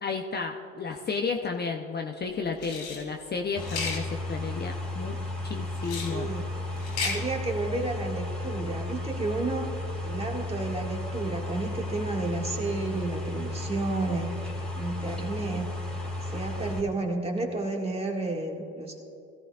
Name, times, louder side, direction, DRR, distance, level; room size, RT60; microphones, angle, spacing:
voice 1, 0.0-5.2 5.4-6.3, left 5 dB, 30° left, 2 dB, 0.8 m, -32 dB
sound 1, 2.6-3.0 3.6-4.0 5.8-6.1 6.8-7.2, left 4 dB, 85° left, 3.1 m, -33 dB
sound 2, 3.6-16.8, left 2 dB, 5° left, 2.5 m, -34 dB
voice 2, 6.1-6.5 7.0-9.7 10.0-14.4 14.7-15.7 16.2-19.0, right 2 dB, 15° right, 0 dB, 2.0 m, -31 dB
17.0 x 14.0 x 2.4 m, 2.8 s
hypercardioid pair, 70°, 34 cm